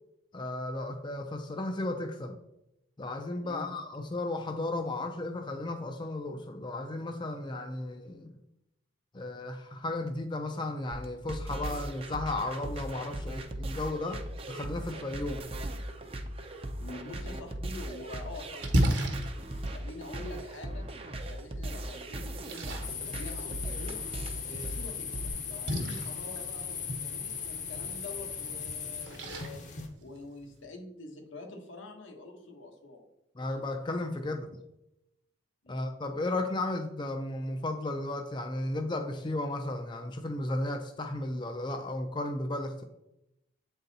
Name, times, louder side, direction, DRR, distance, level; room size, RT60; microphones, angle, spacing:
voice 1, 0.3-2.4 3.0-8.3 9.1-14.2 14.5-15.4 33.4-34.6 35.7-42.8, left 2 dB, 25° left, 5 dB, 0.4 m, -34 dB
sound 1, 10.9-25.3, right 1 dB, 30° right, 0.5 m, -38 dB
voice 2, 16.8-20.9 21.3-24.0 24.4-29.6 30.0-33.0 35.6-35.9, left 2 dB, 85° left, 3 dB, 1.2 m, -46 dB
Splash splatter, 17.6-30.6, equal, 60° right, 1.1 m, -37 dB
sound 2, 22.8-29.9, left 6 dB, 40° left, 0.8 m, -38 dB
8.0 x 4.0 x 4.0 m, 0.88 s
head